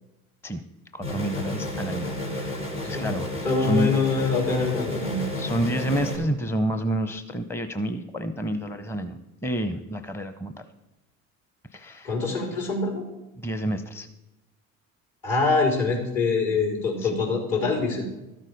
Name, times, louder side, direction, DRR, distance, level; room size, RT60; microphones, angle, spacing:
voice 1, 0.9-3.3 3.6-3.9 5.3-10.5 11.7-12.1 13.4-14.1 17.0-17.2, right 1 dB, 5° left, 9 dB, 0.7 m, -29 dB
sound 1, 1.0-6.2, left 1 dB, 80° left, 3.0 m, -32 dB
voice 2, 3.4-5.2 12.0-13.0 15.2-18.0, left 4 dB, 60° left, -1 dB, 4.6 m, -24 dB
12.5 x 7.5 x 5.1 m, 1.0 s
hypercardioid pair, 65°, 40 cm